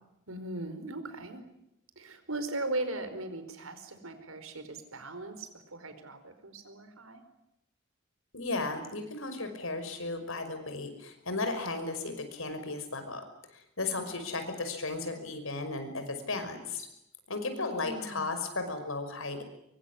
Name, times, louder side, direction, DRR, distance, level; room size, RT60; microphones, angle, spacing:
voice 1, 0.3-1.4 1.9-7.2 17.4-18.4, right 2 dB, 90° right, 9 dB, 4.8 m, -39 dB
voice 2, 8.3-13.2 13.5-16.9 17.3-19.4, left 3 dB, 75° left, 7 dB, 5.8 m, -35 dB
24.5 x 23.5 x 9.9 m, 0.84 s
head